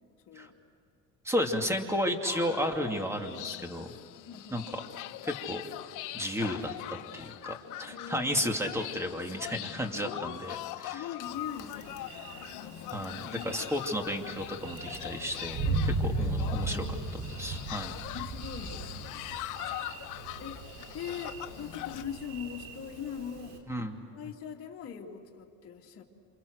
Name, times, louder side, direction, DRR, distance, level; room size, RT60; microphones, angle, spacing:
voice 1, 1.2-3.9 4.5-4.8 5.2-5.6 6.1-10.6 10.8-11.1 12.9-16.8 17.4-18.0 23.7-24.0, equal, 10° right, 4 dB, 2.6 m, -33 dB
sound 1, 2.2-22.0, left 15 dB, 70° left, 1.0 m, -42 dB
voice 2, 4.3-4.7 7.9-8.5 10.0-10.4 10.9-12.5 13.2-13.7 15.6-15.8 16.5-17.0 18.0-19.3 20.4-23.6 24.1-26.0, left 8 dB, 45° left, -2 dB, 2.6 m, -42 dB
Thunder, 11.2-23.6, right 2 dB, 85° right, 4.0 m, -37 dB
28.5 x 27.5 x 6.5 m, 2.4 s
cardioid pair, 120°, 32 cm